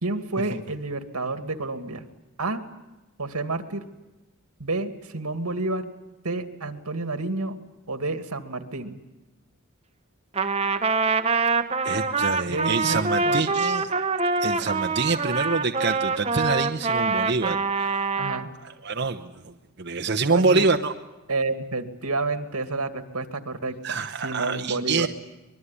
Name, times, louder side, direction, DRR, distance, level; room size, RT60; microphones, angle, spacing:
voice 1, 0.0-2.0 2.4-2.6 3.2-3.8 4.6-5.9 6.2-7.6 7.9-9.0 12.5-13.5 18.2-18.5 20.3-20.6 21.3-25.1, right 2 dB, 90° right, 9 dB, 2.3 m, -30 dB
Trumpet, 10.4-18.5, right 4 dB, 25° right, 1.1 m, -25 dB
voice 2, 11.8-13.9 14.4-18.1 18.6-19.5 19.8-20.9 23.8-25.1, right 4 dB, 50° right, 5 dB, 1.0 m, -26 dB
24.5 x 22.0 x 9.9 m, 1.1 s
head